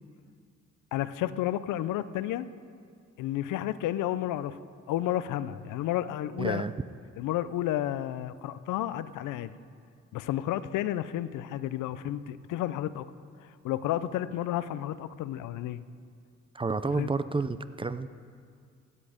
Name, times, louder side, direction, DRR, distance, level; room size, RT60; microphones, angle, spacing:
voice 1, 0.9-2.5 3.2-4.6 4.9-6.7 7.2-9.5 10.1-13.1 13.4-15.8 16.9-17.1, left 13 dB, 85° left, 15 dB, 0.5 m, -31 dB
voice 2, 6.4-6.7 16.5-18.1, right 4 dB, 20° right, 13 dB, 0.4 m, -30 dB
16.0 x 8.5 x 5.0 m, 2.2 s
cardioid pair, 90°, 30 cm